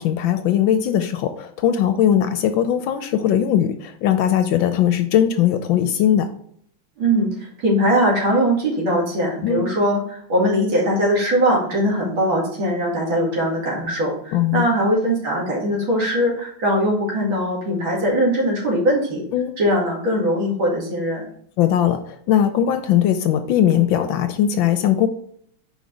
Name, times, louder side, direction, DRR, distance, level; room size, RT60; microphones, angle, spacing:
voice 1, 0.0-6.3 9.4-9.7 14.3-14.7 19.3-19.5 21.6-25.1, left 10 dB, 75° left, 9 dB, 1.2 m, -19 dB
voice 2, 7.0-7.3 7.6-19.2 19.6-21.2, equal, 65° right, -3 dB, 2.9 m, -20 dB
5.2 x 5.0 x 3.9 m, 0.65 s
omnidirectional pair, 2.3 m